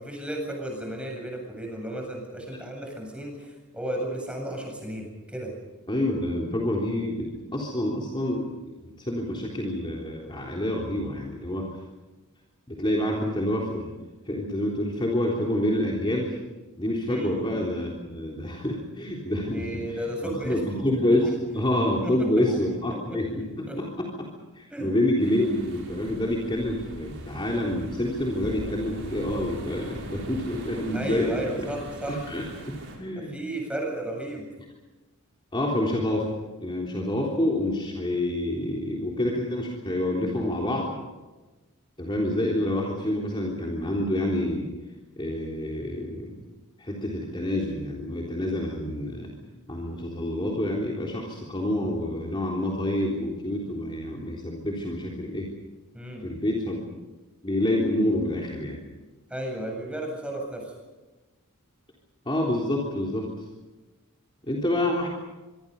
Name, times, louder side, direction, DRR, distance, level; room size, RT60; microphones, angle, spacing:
voice 1, 0.0-5.5 17.1-17.3 19.4-20.8 21.1-21.3 22.0-22.6 22.9-23.8 24.7-24.9 30.9-32.2 33.2-34.4 55.9-56.2 59.3-60.7, right 1 dB, 5° right, 1 dB, 7.9 m, -34 dB
voice 2, 5.9-8.7 9.0-11.7 12.7-13.9 14.3-16.4 16.8-20.0 20.2-24.3 24.6-31.5 32.1-33.3 35.5-36.3 36.6-40.9 42.0-44.7 45.2-46.3 46.8-49.3 49.7-55.5 56.2-56.8 57.4-58.8 62.3-63.3 64.5-65.1, left 1 dB, 20° left, -2 dB, 3.6 m, -27 dB
sound 1, 25.2-33.0, right 1 dB, 55° right, 6.6 m, -40 dB
25.0 x 25.0 x 5.5 m, 1.2 s
head